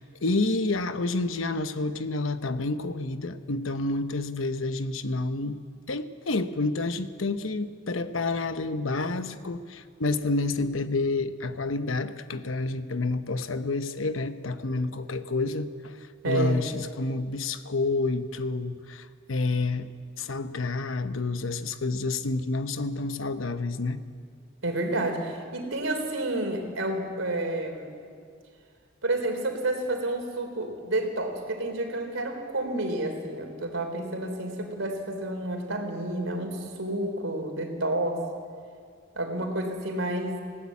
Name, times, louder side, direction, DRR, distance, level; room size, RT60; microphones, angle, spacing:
voice 1, 0.0-5.6 5.9-16.0 16.2-19.9 20.2-24.0, left 3 dB, 80° left, 10 dB, 1.0 m, -29 dB
voice 2, 16.2-16.6 24.6-28.0 29.0-38.2 39.2-40.4, right 1 dB, 80° right, 4 dB, 3.5 m, -30 dB
19.5 x 17.0 x 8.6 m, 2.2 s
head